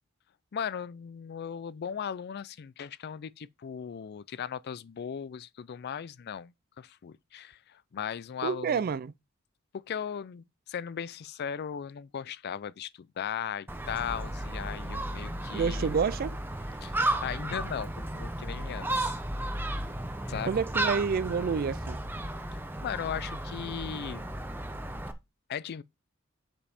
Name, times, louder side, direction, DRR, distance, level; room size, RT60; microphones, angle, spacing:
voice 1, 0.5-8.8 9.9-15.9 16.8-19.2 20.3-20.6 22.8-24.3 25.5-25.8, left 8 dB, 50° left, 0.4 m, -37 dB
voice 2, 8.4-9.1 15.5-16.4 20.5-22.0, right 6 dB, 45° right, 0.4 m, -28 dB
Gull seagull, 13.7-25.1, right 1 dB, 10° right, 0.8 m, -34 dB
7.2 x 5.3 x 4.2 m
head